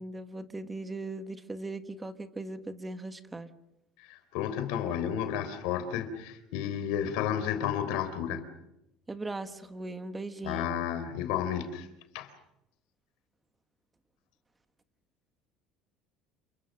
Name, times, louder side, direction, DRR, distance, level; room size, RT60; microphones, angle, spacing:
voice 1, 0.0-3.5 9.1-10.8, right 2 dB, 15° right, 10 dB, 1.4 m, -39 dB
voice 2, 4.0-8.4 10.4-11.9 12.1-12.3, left 9 dB, 80° left, 9 dB, 3.8 m, -32 dB
28.5 x 23.0 x 6.5 m, 0.89 s
cardioid pair, 130°, 0 cm